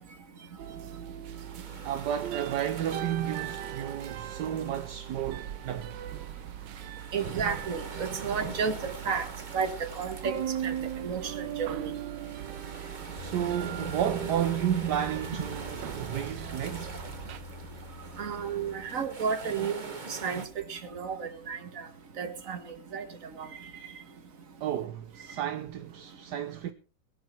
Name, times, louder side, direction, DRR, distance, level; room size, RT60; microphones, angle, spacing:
sound 1, 0.6-17.4, right 11 dB, 85° right, 1.5 m, -39 dB
sound 2, 1.2-20.5, right 4 dB, 30° right, 1.3 m, -44 dB
voice 1, 1.8-6.0 13.1-17.0 24.6-26.7, right 10 dB, 70° right, 1.4 m, -32 dB
voice 2, 7.1-9.3 9.5-9.7 10.0-10.4 10.6-10.7 11.0-11.9 18.2-20.4 20.7-21.9 22.2-22.6 22.9-23.1 23.4-23.5, right 6 dB, 50° right, 1.9 m, -32 dB
sound 3, 13.2-19.7, left 3 dB, 30° left, 1.0 m, -46 dB
21.5 x 9.3 x 4.5 m
omnidirectional pair, 1.9 m